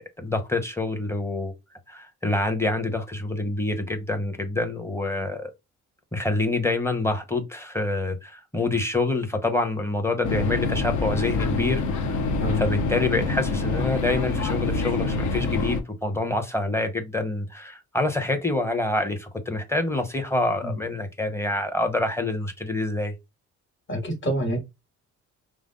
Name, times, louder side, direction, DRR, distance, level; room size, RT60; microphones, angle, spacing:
voice 1, 0.0-1.5 1.9-5.5 6.1-12.2 12.6-23.1, left 2 dB, 10° left, 1.0 m, -26 dB
sound 1, 10.2-15.8, left 3 dB, 70° left, 0.9 m, -26 dB
voice 2, 23.9-24.6, equal, 40° left, 2.5 m, -27 dB
5.0 x 2.0 x 3.8 m
cardioid pair, 90°, 30 cm